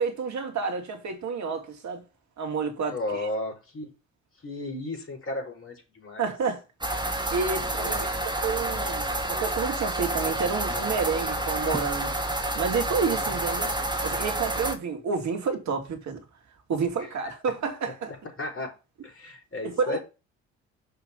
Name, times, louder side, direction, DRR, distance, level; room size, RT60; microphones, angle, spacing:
voice 1, 0.0-2.0 2.4-3.3 6.2-6.6 7.3-12.2 12.6-13.7 14.0-16.2 16.7-18.1 19.6-20.0, right 5 dB, 55° right, 2.6 m, -29 dB
voice 2, 2.9-3.9 4.4-6.3 7.7-8.0 17.0-17.3 18.4-18.7 19.0-20.0, left 2 dB, 40° left, 5.2 m, -34 dB
sound 1, 6.8-14.7, right 1 dB, 15° right, 2.1 m, -29 dB
6.9 x 6.0 x 5.5 m
hypercardioid pair, 50°, 35 cm